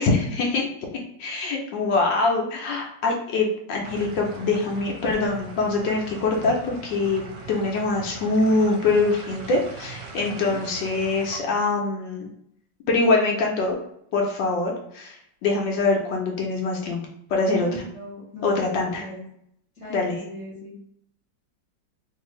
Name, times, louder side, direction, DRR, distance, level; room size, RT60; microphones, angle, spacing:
voice 1, 0.0-7.2 7.5-12.3 12.9-13.8 14.1-15.2 15.4-17.0 17.3-17.7 18.4-19.0 19.9-20.2, left 3 dB, 75° left, 0 dB, 1.2 m, -24 dB
sound 1, 3.8-11.4, right 4 dB, 70° right, 1.2 m, -40 dB
voice 2, 10.2-10.6 17.4-19.2 19.7-20.8, left 1 dB, 20° right, -8 dB, 1.1 m, -38 dB
3.1 x 2.6 x 2.9 m, 0.73 s
omnidirectional pair, 2.1 m